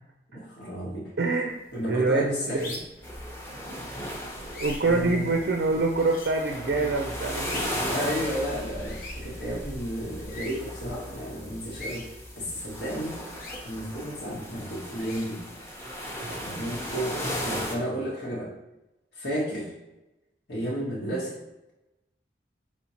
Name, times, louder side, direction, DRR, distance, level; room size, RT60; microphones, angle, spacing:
voice 1, 0.3-1.1 1.7-2.8 4.8-5.3 7.9-12.1 12.4-13.2 13.6-15.5 16.4-18.5 19.1-19.7 20.5-21.3, equal, 90° left, -6 dB, 1.2 m, -32 dB
voice 2, 1.2-1.6 1.8-2.7 4.5-8.2 16.2-16.4, right 3 dB, 70° right, 2 dB, 0.4 m, -26 dB
sound 1, 1.5-17.8, left 2 dB, 50° left, 0.8 m, -46 dB
sound 2, 3.0-17.8, equal, 15° left, 0.7 m, -36 dB
4.4 x 4.3 x 2.8 m, 0.97 s
head